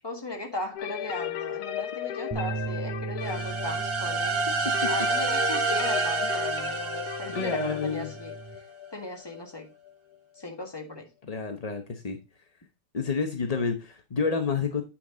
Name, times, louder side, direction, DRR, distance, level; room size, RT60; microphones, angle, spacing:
voice 1, 0.0-4.4 4.9-8.3 8.9-9.7 10.4-11.1, left 2 dB, 15° left, 1.5 m, -37 dB
sound 1, 0.8-10.4, left 10 dB, 70° left, 1.1 m, -36 dB
sound 2, 2.3-8.6, right 6 dB, 15° right, 1.0 m, -38 dB
sound 3, 3.2-8.1, right 4 dB, 60° right, 1.6 m, -28 dB
voice 2, 7.3-8.1 11.2-12.2 12.9-14.8, left 5 dB, 45° left, 0.4 m, -29 dB
8.8 x 5.8 x 3.8 m
omnidirectional pair, 1.9 m